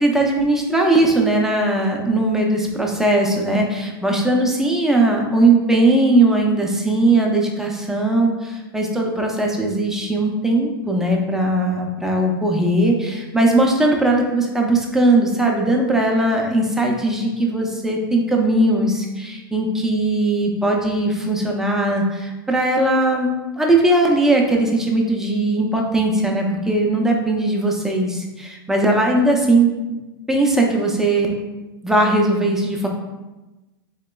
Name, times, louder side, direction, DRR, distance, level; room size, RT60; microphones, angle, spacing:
voice 1, 0.0-29.7 30.3-31.5 31.8-32.9, right 2 dB, 5° right, 0 dB, 0.5 m, -19 dB
4.0 x 2.9 x 2.2 m, 1.1 s
hypercardioid pair, 120°, 13 cm